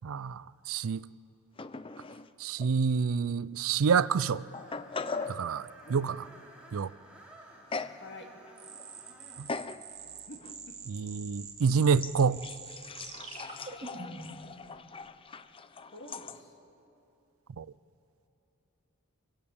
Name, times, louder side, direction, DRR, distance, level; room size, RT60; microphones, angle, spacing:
voice 1, 0.0-1.0 2.4-4.4 5.3-6.2 6.7-6.9 9.4-9.5 10.9-12.4 17.6-17.7, right 6 dB, 65° right, 0.4 m, -28 dB
sound 1, 1.6-2.3 2.6-2.7 3.6-3.7 4.3-5.4 7.7-8.0 8.5-8.9 9.5-9.8 10.4-10.5 12.0-16.4, left 4 dB, 25° left, 0.5 m, -40 dB
Screech, 4.0-9.5, right 1 dB, 5° right, 3.4 m, -55 dB
voice 2, 5.8-6.1 7.7-8.3 10.0-10.8 13.5-13.6 15.9-16.6, left 1 dB, 55° left, 2.7 m, -49 dB
sound 2, 8.6-14.4, right 4 dB, 30° right, 2.7 m, -45 dB
25.5 x 15.5 x 8.6 m
head